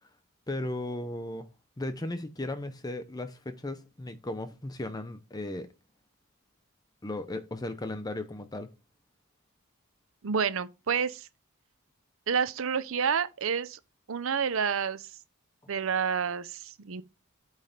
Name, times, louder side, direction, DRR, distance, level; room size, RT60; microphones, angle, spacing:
voice 1, 0.5-1.5 1.8-5.7 7.0-8.7, left 1 dB, 20° left, 0.6 m, -36 dB
voice 2, 10.2-11.3 12.3-13.8 14.1-15.1 15.7-17.0, right 6 dB, 65° right, 0.6 m, -29 dB
8.7 x 3.2 x 5.7 m
head